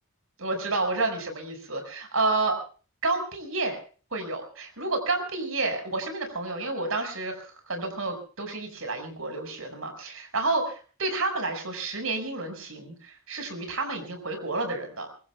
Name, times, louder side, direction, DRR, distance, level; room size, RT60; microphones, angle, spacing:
voice 1, 0.4-2.6 3.0-3.8 4.1-15.1, right 3 dB, 75° right, 6 dB, 5.6 m, -30 dB
24.5 x 23.5 x 2.3 m, 0.39 s
head